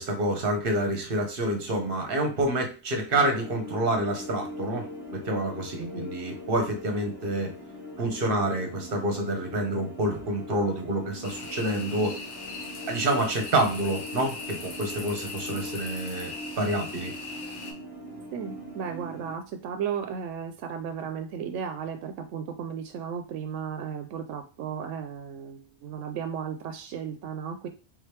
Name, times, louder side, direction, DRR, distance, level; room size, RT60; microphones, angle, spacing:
voice 1, 0.0-4.9 5.2-7.5 8.0-12.2 12.9-16.3 16.6-17.1, right 1 dB, 50° right, 3 dB, 1.1 m, -28 dB
sound 1, 3.1-19.3, left 1 dB, 25° right, 0.6 m, -41 dB
sound 2, 11.2-17.7, left 4 dB, 80° left, 1.2 m, -40 dB
voice 2, 18.3-27.7, right 7 dB, 85° right, 6 dB, 0.9 m, -35 dB
3.6 x 3.1 x 3.3 m, 0.33 s
omnidirectional pair, 1.2 m